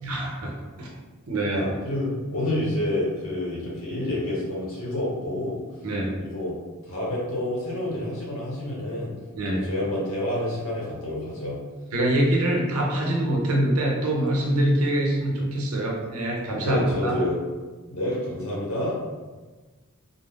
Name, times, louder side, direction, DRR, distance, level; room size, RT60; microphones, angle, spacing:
voice 1, 0.0-0.9 1.3-1.6 5.8-6.1 9.4-9.6 11.9-17.2, right 1 dB, 85° right, -1 dB, 0.6 m, -24 dB
voice 2, 1.5-5.6 6.2-6.5 6.8-9.1 9.5-11.6 16.6-17.4 17.9-19.0, left 1 dB, 70° left, -5 dB, 0.9 m, -28 dB
2.4 x 2.1 x 3.3 m, 1.3 s
head